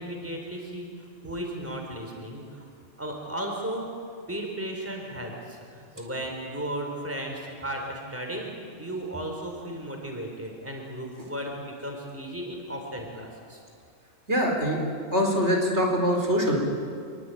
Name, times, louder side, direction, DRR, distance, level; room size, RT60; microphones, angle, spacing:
voice 1, 0.0-2.7 3.0-13.6, right 1 dB, 10° right, 1 dB, 4.2 m, -35 dB
voice 2, 14.3-14.8 15.1-16.6, equal, 55° right, 1 dB, 4.9 m, -23 dB
25.5 x 23.0 x 9.3 m, 2.2 s
omnidirectional pair, 1.3 m